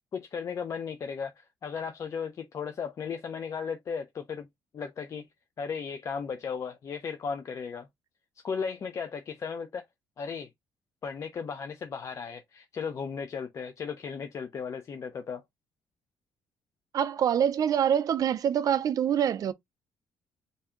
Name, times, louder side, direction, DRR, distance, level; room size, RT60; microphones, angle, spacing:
voice 1, 0.1-4.5 4.7-5.2 5.6-7.9 8.4-9.8 10.2-10.5 11.0-15.4, left 6 dB, 40° left, 0.5 m, -35 dB
voice 2, 16.9-19.5, right 9 dB, 45° right, 0.4 m, -25 dB
3.3 x 2.7 x 3.5 m
cardioid pair, 155°, 8 cm